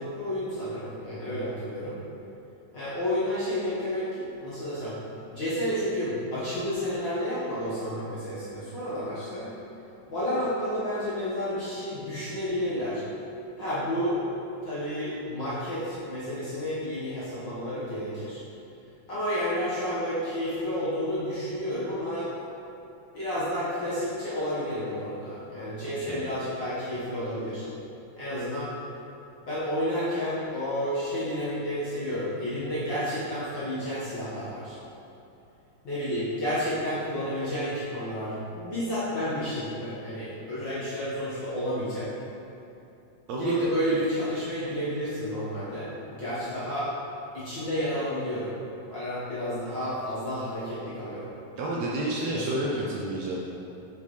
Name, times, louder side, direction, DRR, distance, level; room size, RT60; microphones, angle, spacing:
voice 1, 0.0-2.0 2.7-5.0 5.3-9.5 10.1-13.0 13.6-14.3 14.6-18.4 19.1-22.3 23.1-27.7 28.1-28.7 29.5-34.8 35.8-42.1 43.3-46.9 47.3-48.5 48.9-51.3 52.3-52.4, equal, 45° left, -11 dB, 1.6 m, -31 dB
voice 2, 43.3-43.6 51.6-53.4, right 1 dB, 75° right, -4 dB, 1.8 m, -30 dB
8.2 x 5.5 x 3.3 m, 2.8 s
omnidirectional pair, 3.6 m